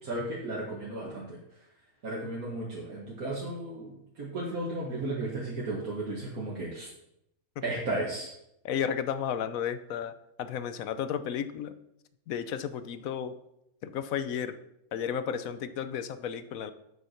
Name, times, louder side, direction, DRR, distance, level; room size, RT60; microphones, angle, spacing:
voice 1, 0.0-1.4 2.0-6.9 7.6-8.3, right 2 dB, 70° right, -5 dB, 2.3 m, -34 dB
voice 2, 8.6-11.7 12.3-13.3 13.8-14.6 14.9-16.7, left 8 dB, 70° left, 13 dB, 1.1 m, -33 dB
8.1 x 8.0 x 5.8 m, 0.81 s
omnidirectional pair, 1.6 m